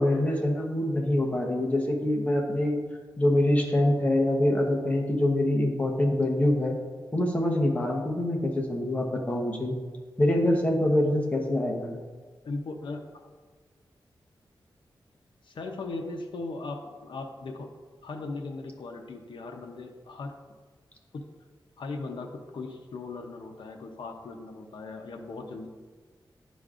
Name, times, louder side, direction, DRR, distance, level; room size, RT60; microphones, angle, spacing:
voice 1, 0.0-2.8 3.2-6.8 7.1-9.8 10.2-12.0, left 1 dB, 15° left, 0 dB, 1.0 m, -25 dB
voice 2, 12.4-13.3 15.4-17.7 18.0-20.3 21.1-21.2 21.8-25.7, left 3 dB, 70° left, 3 dB, 0.7 m, -38 dB
10.5 x 5.1 x 2.5 m, 1.5 s
wide cardioid pair, 140°, 9 cm